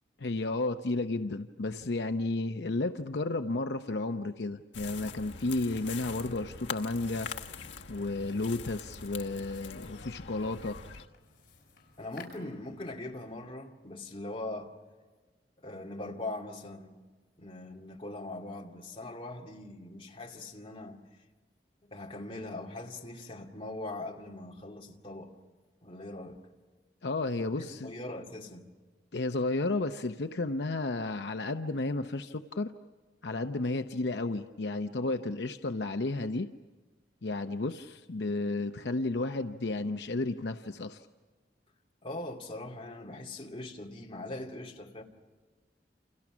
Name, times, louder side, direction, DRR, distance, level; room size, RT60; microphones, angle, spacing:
voice 1, 0.2-7.3 7.9-10.8 27.0-27.9 29.1-32.7 33.2-36.5 37.2-41.1, left 2 dB, 70° left, 0.7 m, -32 dB
sound 1, 4.7-11.1, left 5 dB, 85° left, 1.2 m, -43 dB
sound 2, 7.0-13.4, left 4 dB, 50° left, 6.9 m, -58 dB
voice 2, 12.0-14.7 15.6-16.9 17.4-21.0 21.9-25.4 25.8-26.5 27.4-28.7 42.0-45.0, left 2 dB, 30° left, 2.3 m, -41 dB
29.5 x 28.5 x 6.2 m
head